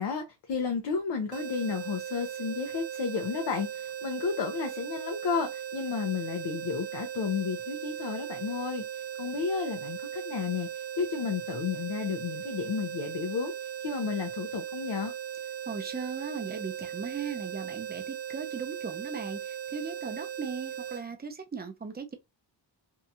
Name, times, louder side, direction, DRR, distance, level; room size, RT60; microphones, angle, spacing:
voice 1, 0.0-15.1, left 6 dB, 65° left, 0.6 m, -32 dB
sound 1, 1.3-21.0, right 10 dB, 85° right, 0.6 m, -38 dB
voice 2, 15.7-22.2, right 5 dB, 25° right, 0.5 m, -38 dB
2.7 x 2.3 x 2.6 m
wide cardioid pair, 135°, 43 cm